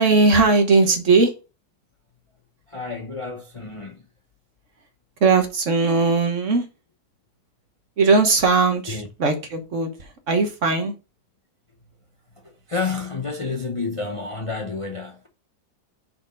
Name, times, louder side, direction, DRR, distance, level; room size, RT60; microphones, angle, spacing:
voice 1, 0.0-1.3 5.2-6.7 8.0-10.9, right 3 dB, 50° right, 1.3 m, -19 dB
voice 2, 2.7-4.0 8.9-9.1 12.4-15.3, left 4 dB, 35° left, 0.5 m, -30 dB
6.1 x 4.4 x 5.2 m
omnidirectional pair, 1.7 m